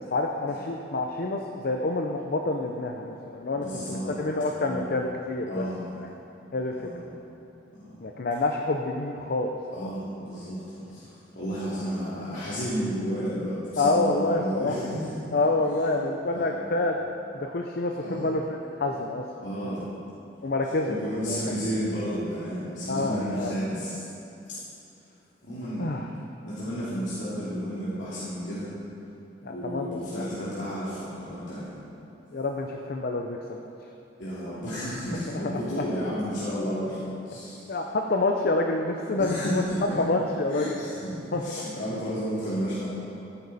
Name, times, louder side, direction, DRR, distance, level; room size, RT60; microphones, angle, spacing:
voice 1, 0.0-5.7 6.0-6.1 6.5-6.7 8.0-9.9 13.8-14.8 15.3-17.0 17.3-18.4 18.8-19.7 20.4-21.4 22.9-23.6 25.8-26.1 29.4-30.2 32.3-33.6 35.4-35.8 37.7-39.6 40.0-40.7 41.3-41.6, left 2 dB, 55° left, 2 dB, 0.6 m, -28 dB
voice 2, 3.5-4.2 4.6-5.0 5.5-5.9 6.8-7.0 7.8-7.9 9.7-15.0 15.7-15.8 16.3-16.5 18.0-18.4 19.4-19.9 20.8-24.0 24.5-24.6 25.4-25.9 26.4-28.7 29.5-31.7 34.2-37.7 39.1-40.0 40.5-42.9, equal, 80° left, -11 dB, 2.6 m, -32 dB
14.0 x 9.8 x 4.1 m, 2.8 s
head